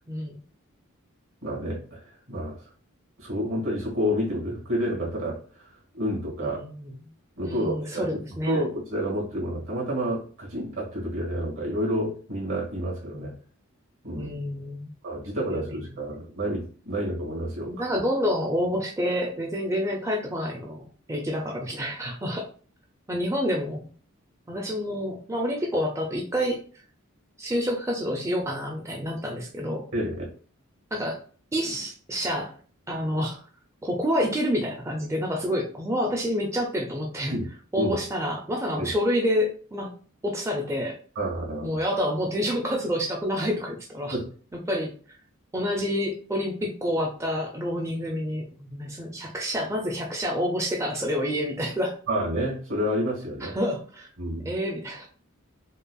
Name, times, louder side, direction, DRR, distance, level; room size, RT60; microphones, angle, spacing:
voice 1, 0.1-0.4 6.4-7.1 7.4-8.6 13.1-13.3 14.1-14.9 15.5-15.8 17.7-22.5 23.1-23.9 24.5-26.6 27.4-29.9 30.9-31.2 31.5-32.5 32.9-33.4 33.8-37.4 37.7-39.9 40.2-41.0 41.6-44.2 44.7-45.2 45.5-51.9 53.4-54.1 54.4-55.1, equal, 15° right, 0 dB, 0.4 m, -28 dB
voice 2, 1.4-2.0 2.3-2.6 3.2-6.6 7.4-8.1 8.5-13.3 14.0-14.3 15.0-17.7 29.9-30.1 37.3-37.4 37.8-38.0 38.8-38.9 41.2-41.8 44.1-44.3 52.1-53.6 54.2-54.5, equal, 70° right, -3 dB, 1.8 m, -29 dB
5.2 x 2.3 x 2.3 m, 0.42 s
head